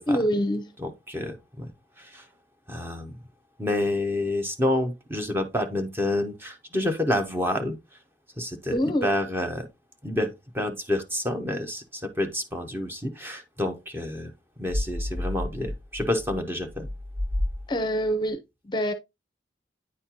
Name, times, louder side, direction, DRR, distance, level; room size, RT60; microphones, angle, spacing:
voice 1, 0.1-0.7 8.7-9.1 17.7-18.4 18.6-18.9, equal, 25° left, 0.6 m, -25 dB
voice 2, 0.8-2.2 2.7-3.2 3.6-7.8 8.4-9.7 10.0-14.3 14.6-16.9, left 1 dB, 15° right, 0.8 m, -29 dB
sound 1, 14.7-18.1, left 1 dB, 90° right, 1.4 m, -31 dB
9.3 x 4.2 x 2.8 m
head